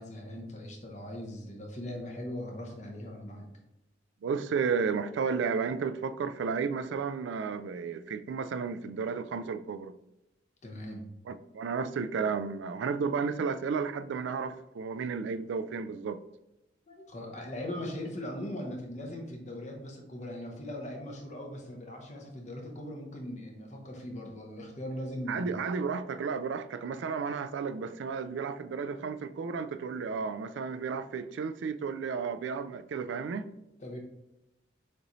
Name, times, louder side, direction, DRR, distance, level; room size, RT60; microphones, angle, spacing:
voice 1, 0.0-3.5 10.6-11.1 16.9-25.5 33.8-34.0, left 1 dB, 40° left, 0.9 m, -40 dB
voice 2, 4.2-10.0 11.3-16.2 25.3-33.5, right 5 dB, 80° right, 0.3 m, -33 dB
6.6 x 2.7 x 3.0 m
head